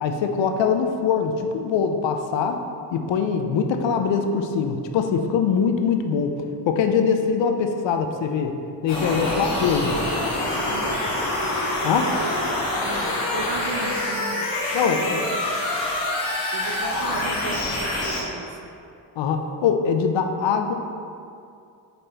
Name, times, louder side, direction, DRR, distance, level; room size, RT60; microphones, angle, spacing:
voice 1, 0.0-2.6 2.9-6.4 6.7-8.6 8.8-9.9 11.8-12.2 14.7-15.2 19.2-20.7, left 6 dB, 70° left, 6 dB, 0.7 m, -22 dB
sound 1, 8.9-18.2, left 1 dB, 90° left, 1.4 m, -26 dB
voice 2, 9.9-11.2 11.8-14.6 15.0-15.4 15.7-15.8 16.5-18.7, right 3 dB, 60° right, 5 dB, 0.8 m, -36 dB
5.3 x 4.2 x 4.3 m, 2.5 s
supercardioid pair, 55°, 48 cm